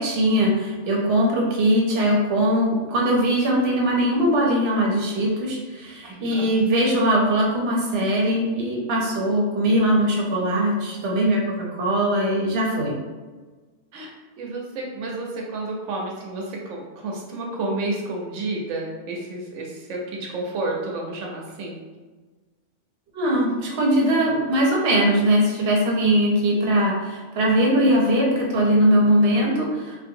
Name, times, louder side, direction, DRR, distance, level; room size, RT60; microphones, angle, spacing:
voice 1, 0.0-13.0 23.1-30.1, right 1 dB, 60° right, -2 dB, 0.9 m, -21 dB
voice 2, 6.0-6.4 13.9-14.1 14.4-21.8, right 2 dB, 90° right, -1 dB, 0.9 m, -30 dB
2.5 x 2.4 x 2.7 m, 1.3 s
omnidirectional pair, 1.2 m